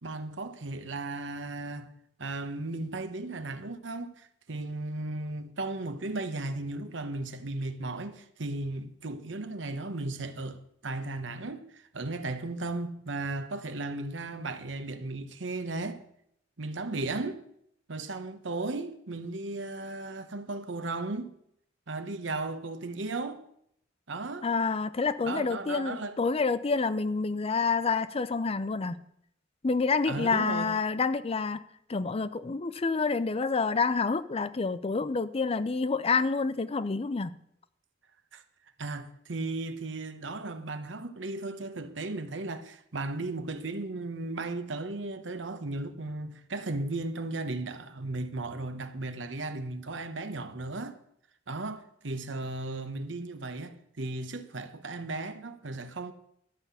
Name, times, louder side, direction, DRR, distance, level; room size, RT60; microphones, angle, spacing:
voice 1, 0.0-1.9 2.2-16.0 16.6-17.4 17.9-21.3 21.9-23.4 24.1-24.5 25.2-26.2 30.1-30.7 38.3-38.4 38.8-51.0 51.5-56.1, right 2 dB, 75° right, 1.0 m, -35 dB
voice 2, 24.4-29.0 29.6-31.6 31.9-37.3, left 4 dB, 30° left, 0.5 m, -28 dB
12.5 x 5.7 x 8.2 m
head